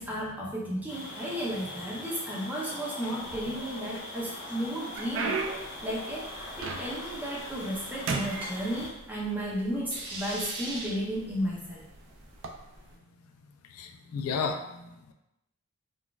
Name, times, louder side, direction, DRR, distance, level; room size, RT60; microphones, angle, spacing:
voice 1, 0.0-5.3 5.8-6.3 6.6-11.8, equal, 10° right, -5 dB, 0.6 m, -33 dB
sound 1, 0.9-8.9, left 1 dB, 50° left, 0.9 m, -41 dB
sound 2, 3.2-3.9 4.4-7.2 7.5-7.8 8.1-9.3 10.1-10.2 10.9-11.1 12.3-12.5, right 4 dB, 60° right, 0.3 m, -35 dB
sound 3, 4.9-12.9, right 2 dB, 90° right, 0.8 m, -46 dB
voice 2, 13.7-15.1, left 5 dB, 80° left, 5 dB, 0.3 m, -33 dB
3.9 x 2.3 x 2.3 m, 0.90 s
head